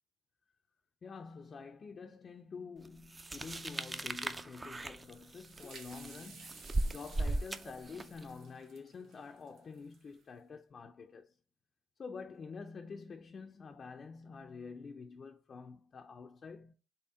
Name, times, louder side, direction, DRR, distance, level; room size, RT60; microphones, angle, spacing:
voice 1, 1.0-11.3 12.0-16.7, left 5 dB, 45° left, 0.4 m, -48 dB
sound 1, 3.1-8.2, right 2 dB, 25° right, 0.4 m, -37 dB
sound 2, 4.7-10.2, right 5 dB, 80° right, 1.2 m, -56 dB
4.3 x 3.4 x 3.6 m
cardioid pair, 90°, 0 cm